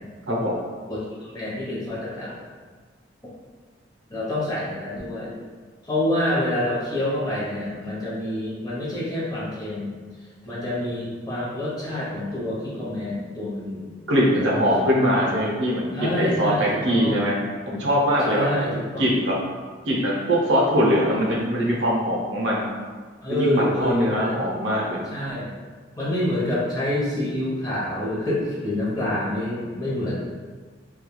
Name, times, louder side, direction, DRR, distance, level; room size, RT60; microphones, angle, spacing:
voice 1, 0.9-2.4 4.1-5.3 5.9-9.9 10.4-13.9 14.3-14.6 15.9-17.2 18.2-19.1 23.2-24.3 25.1-25.5 26.0-30.1, left 1 dB, 20° left, -8 dB, 0.7 m, -27 dB
voice 2, 14.1-17.3 17.7-18.5 19.0-19.4 19.9-22.7 23.3-25.0, equal, 65° right, -4 dB, 0.6 m, -22 dB
2.2 x 2.2 x 3.0 m, 1.5 s
head